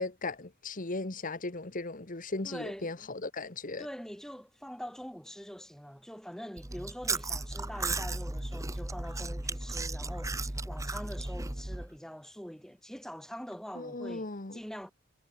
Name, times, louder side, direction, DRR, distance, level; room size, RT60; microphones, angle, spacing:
voice 1, 0.0-3.9 13.7-14.6, left 3 dB, 40° left, 1.4 m, -37 dB
voice 2, 2.4-3.1 3.8-14.9, equal, ahead, 4.8 m, -44 dB
Chewing mastication, 6.6-11.9, right 2 dB, 15° right, 1.1 m, -35 dB
head